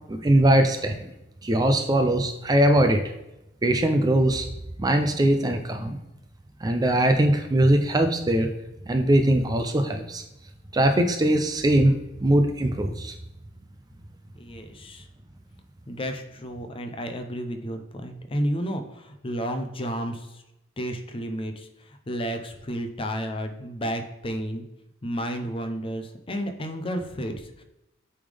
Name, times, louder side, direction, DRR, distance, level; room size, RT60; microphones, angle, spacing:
voice 1, 0.1-1.0 1.4-3.0 3.6-4.4 4.8-6.0 6.6-8.5 8.9-10.2 10.7-13.1, right 1 dB, 20° right, 6 dB, 0.4 m, -21 dB
voice 2, 14.4-15.0 15.9-20.2 20.8-21.7 22.1-24.6 25.0-27.6, equal, 30° left, 6 dB, 0.7 m, -31 dB
8.5 x 3.6 x 3.4 m, 0.89 s
head